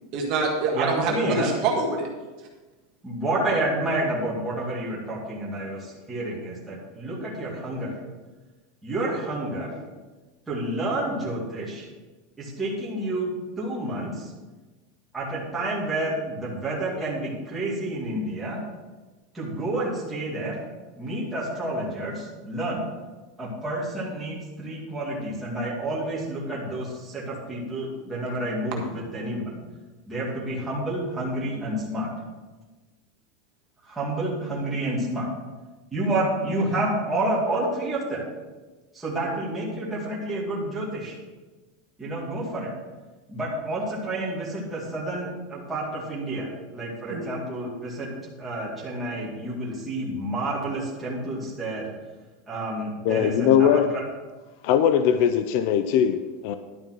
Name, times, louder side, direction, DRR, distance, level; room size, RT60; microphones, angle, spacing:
voice 1, 0.1-2.1 47.1-47.3, right 3 dB, 40° right, -1 dB, 1.7 m, -25 dB
voice 2, 0.7-1.5 3.0-7.9 8.8-9.7 10.5-11.9 12.4-13.3 13.6-14.3 15.1-18.6 19.3-20.6 21.0-22.8 23.4-29.5 30.1-32.1 33.8-35.3 35.9-38.2 38.9-41.2 42.0-42.7 43.3-48.1 48.4-51.9 52.5-54.0, right 1 dB, 10° right, -6 dB, 2.4 m, -29 dB
voice 3, 53.0-53.9 54.6-56.6, left 9 dB, 50° left, 10 dB, 0.5 m, -20 dB
11.5 x 5.5 x 6.1 m, 1.2 s
supercardioid pair, 175°, 0 cm